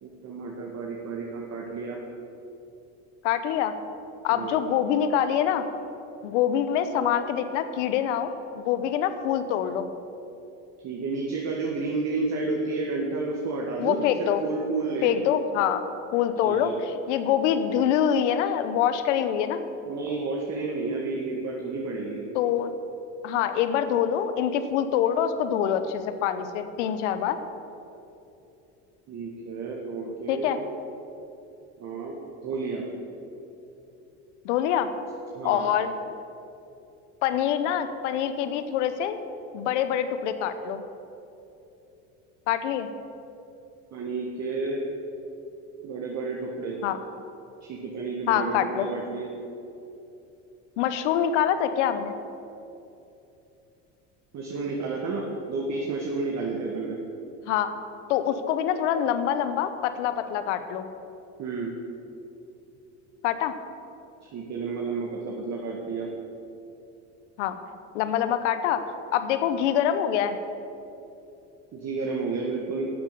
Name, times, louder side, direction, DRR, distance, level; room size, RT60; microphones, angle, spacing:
voice 1, 0.0-2.0 4.3-4.6 10.8-15.2 16.4-16.8 19.9-22.2 29.1-30.5 31.8-32.8 35.4-35.7 43.9-44.9 45.8-46.8 47.6-49.3 54.3-57.0 61.4-61.7 64.2-66.1 71.7-72.9, right 3 dB, 50° right, -1 dB, 1.8 m, -31 dB
voice 2, 3.2-3.7 4.2-5.6 6.2-9.9 13.8-14.4 15.0-15.8 16.1-19.6 22.3-22.7 23.2-27.4 30.3-30.6 34.4-34.9 35.4-35.9 37.2-39.2 39.5-40.8 42.5-42.9 46.8-47.0 48.3-48.9 50.8-52.1 57.5-57.7 58.1-60.9 63.2-63.5 67.4-67.6 67.9-68.8 69.1-70.4, left 9 dB, 85° left, 10 dB, 0.9 m, -25 dB
12.0 x 7.4 x 6.8 m, 2.8 s
supercardioid pair, 85°, 35 cm